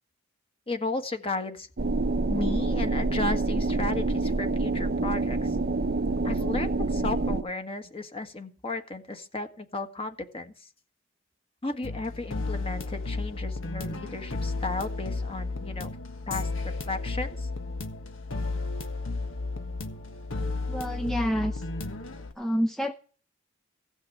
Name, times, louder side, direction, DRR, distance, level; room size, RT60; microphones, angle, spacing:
voice 1, 0.7-1.7 2.3-5.6 6.2-10.7 11.6-15.9 16.3-17.5, left 2 dB, 30° left, 7 dB, 1.5 m, -34 dB
sound 1, 1.8-7.4, right 2 dB, 50° right, 0.7 m, -27 dB
sound 2, 11.8-22.3, left 3 dB, 80° left, 1.5 m, -33 dB
voice 2, 20.7-21.6 22.4-22.9, equal, ahead, 3 dB, 0.7 m, -28 dB
16.0 x 6.3 x 8.5 m, 0.41 s
head